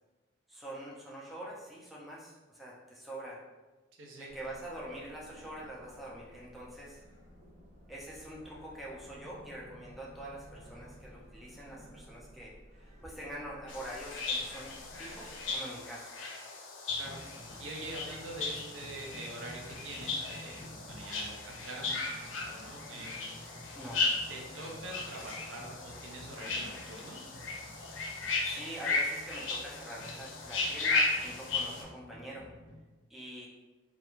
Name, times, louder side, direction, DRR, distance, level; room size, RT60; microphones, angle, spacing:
voice 1, 0.5-3.4 4.2-7.0 7.9-12.5 12.8-16.1 23.7-24.1 28.4-32.5 33.1-33.5, right 1 dB, ahead, -5 dB, 0.4 m, -45 dB
voice 2, 4.0-4.3 17.0-17.2 17.6-23.2 24.3-27.2, right 1 dB, 85° right, 0 dB, 0.5 m, -45 dB
sound 1, 4.3-15.6, equal, 35° right, 0.6 m, -54 dB
sound 2, 13.7-31.8, left 3 dB, 80° left, 0.5 m, -36 dB
sound 3, 16.9-32.8, left 1 dB, 45° left, 0.8 m, -52 dB
2.4 x 2.1 x 3.0 m, 1.2 s
head